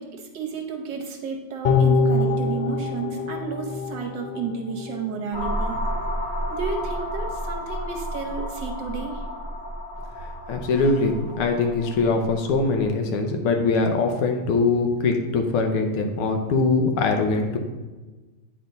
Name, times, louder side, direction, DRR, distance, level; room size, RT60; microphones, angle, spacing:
voice 1, 0.0-5.8 6.5-9.2, right 5 dB, 65° right, 2 dB, 1.4 m, -32 dB
sound 1, 1.6-5.0 5.3-5.4, left 3 dB, 60° left, 1.5 m, -24 dB
sound 2, 5.3-12.9, equal, 40° left, 0.6 m, -31 dB
voice 2, 10.2-17.6, left 3 dB, 85° left, 4 dB, 1.8 m, -22 dB
9.1 x 4.3 x 3.9 m, 1.2 s
omnidirectional pair, 2.3 m